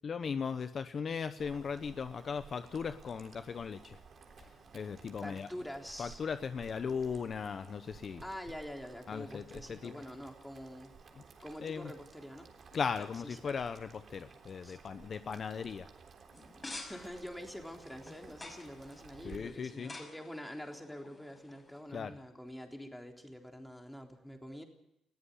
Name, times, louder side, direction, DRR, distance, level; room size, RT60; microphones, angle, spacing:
voice 1, 0.0-4.0 4.4-5.5 6.0-8.2 9.1-9.9 11.6-11.9 12.7-15.9 19.2-19.9 21.9-22.1, left 6 dB, 50° left, 11 dB, 0.9 m, -38 dB
Boiling, 1.4-19.4, right 5 dB, 50° right, 3.6 m, -56 dB
voice 2, 5.2-6.2 8.2-10.9 11.4-12.5 13.2-13.5 14.6-14.8 16.7-24.6, equal, 5° left, 3 dB, 3.7 m, -46 dB
sound 1, 16.3-21.8, left 2 dB, 20° left, 6.1 m, -50 dB
20.5 x 14.0 x 9.9 m, 0.84 s
cardioid pair, 90°, 0 cm